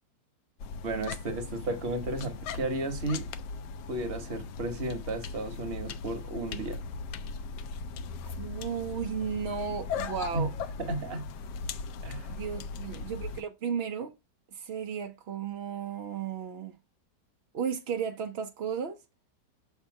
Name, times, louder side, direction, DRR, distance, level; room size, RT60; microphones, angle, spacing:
sound 1, 0.6-13.4, left 4 dB, 75° left, 1.1 m, -38 dB
voice 1, 0.8-3.3 3.9-6.8 10.3-10.5 10.8-11.3 12.0-12.3, right 2 dB, 40° right, 1.0 m, -33 dB
voice 2, 8.4-10.5 12.3-14.1 14.5-16.8 17.5-19.0, right 7 dB, 70° right, 0.5 m, -34 dB
6.7 x 3.5 x 4.6 m
omnidirectional pair, 1.9 m